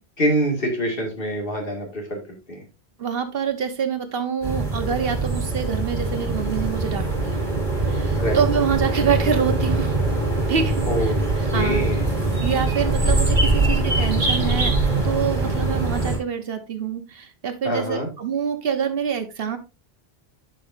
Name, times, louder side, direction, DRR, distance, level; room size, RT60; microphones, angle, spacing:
voice 1, 0.2-2.2 2.5-2.6 8.2-8.4 10.9-11.1 11.5-12.1 17.6-18.1, equal, 60° left, 1 dB, 2.4 m, -25 dB
voice 2, 3.0-7.4 7.8-10.0 10.5-11.1 11.5-11.8 12.4-14.7 15.0-19.6, right 7 dB, 65° right, 9 dB, 1.1 m, -26 dB
sound 1, 4.4-16.2, right 2 dB, 45° right, 3.6 m, -22 dB
10.5 x 5.2 x 2.6 m, 0.28 s
omnidirectional pair, 1.1 m